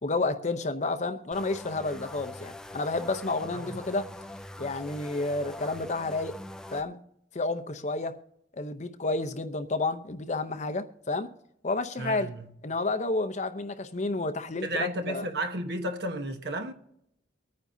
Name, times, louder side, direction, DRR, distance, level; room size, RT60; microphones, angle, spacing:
voice 1, 0.0-4.1 4.6-6.4 6.7-7.0 7.3-8.2 8.5-11.3 11.6-12.3 12.6-15.2, left 3 dB, 40° left, 0.7 m, -30 dB
sound 1, 1.3-6.8, left 1 dB, 5° left, 0.4 m, -43 dB
voice 2, 12.0-12.5 14.6-16.7, right 1 dB, 65° right, 1.2 m, -33 dB
24.0 x 9.5 x 2.7 m
head